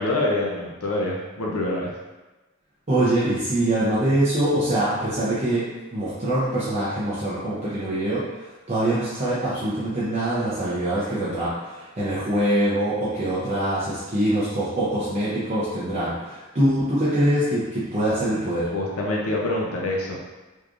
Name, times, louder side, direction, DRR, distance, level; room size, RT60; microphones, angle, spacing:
voice 1, 0.0-1.9 18.7-20.2, left 2 dB, 90° left, -3 dB, 0.6 m, -25 dB
voice 2, 2.9-18.7, right 1 dB, 30° right, -10 dB, 0.7 m, -24 dB
3.6 x 3.2 x 2.5 m, 1.2 s
head